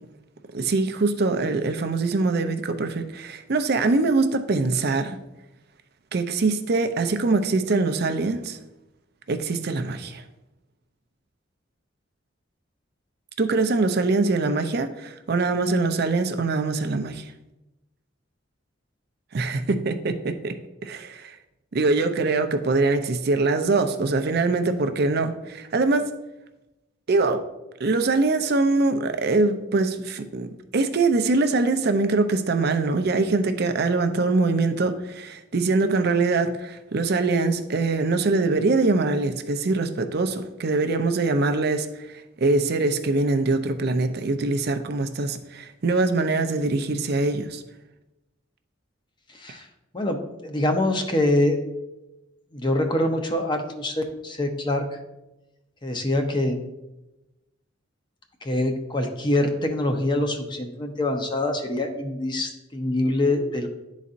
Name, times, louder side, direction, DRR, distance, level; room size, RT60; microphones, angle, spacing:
voice 1, 0.5-5.2 6.1-8.6 9.3-10.2 13.4-17.3 19.3-20.6 20.8-21.3 21.7-26.1 27.1-27.4 27.8-47.6, right 3 dB, 55° right, 0.5 m, -23 dB
voice 2, 49.9-51.6 52.5-54.9 55.8-56.6 58.4-63.7, left 1 dB, 25° left, 0.7 m, -24 dB
11.5 x 4.1 x 2.5 m
head